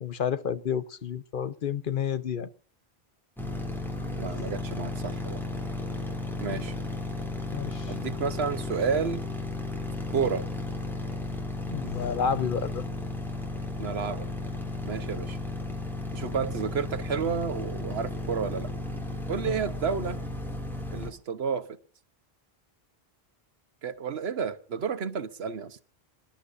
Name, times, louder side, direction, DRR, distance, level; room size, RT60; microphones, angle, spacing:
voice 1, 0.0-2.5 4.3-4.4 6.5-6.6 7.5-7.9 11.7-12.8 19.5-19.6, left 7 dB, 55° left, 1.0 m, -30 dB
sound 1, 3.4-21.1, left 2 dB, ahead, 3.3 m, -34 dB
voice 2, 4.2-5.4 6.4-6.7 7.9-9.2 10.1-10.4 13.8-14.3 14.8-15.4 16.1-18.7 19.3-20.2 20.9-21.8 23.8-25.8, right 6 dB, 80° right, 1.3 m, -31 dB
27.5 x 12.0 x 2.6 m
omnidirectional pair, 1.1 m